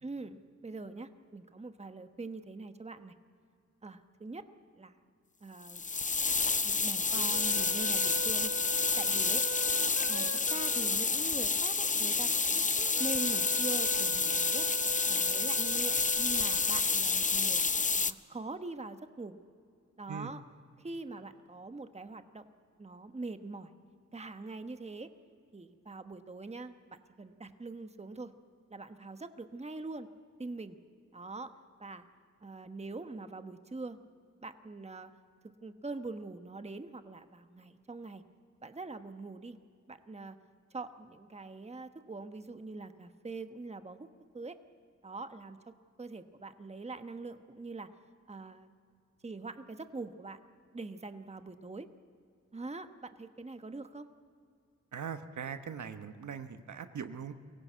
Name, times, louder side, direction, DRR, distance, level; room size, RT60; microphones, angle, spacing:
voice 1, 0.0-3.1 3.8-4.4 4.8-4.9 5.4-5.8 6.4-8.5 9.0-9.5 10.1-12.6 13.0-14.7 15.1-17.6 18.0-19.4 20.0-20.4 20.8-22.4 22.8-23.7 24.1-25.1 25.5-28.3 28.7-30.1 30.4-30.8 31.1-31.5 31.8-32.1 32.4-34.0 34.4-35.1 35.6-38.2 38.6-39.6 39.9-40.4 40.7-44.1 44.3-44.6 45.0-45.6 46.0-47.9 48.3-48.7 49.2-50.4 50.7-51.9 52.5-54.1, right 3 dB, 20° right, 9 dB, 1.1 m, -43 dB
sound 1, 5.7-18.1, left 4 dB, 25° left, 0.6 m, -29 dB
sound 2, 7.1-17.5, right 4 dB, 55° right, 0.8 m, -43 dB
voice 2, 54.9-57.3, right 7 dB, 85° right, 9 dB, 1.1 m, -41 dB
23.5 x 17.0 x 8.2 m, 2.4 s
cardioid pair, 75°, 29 cm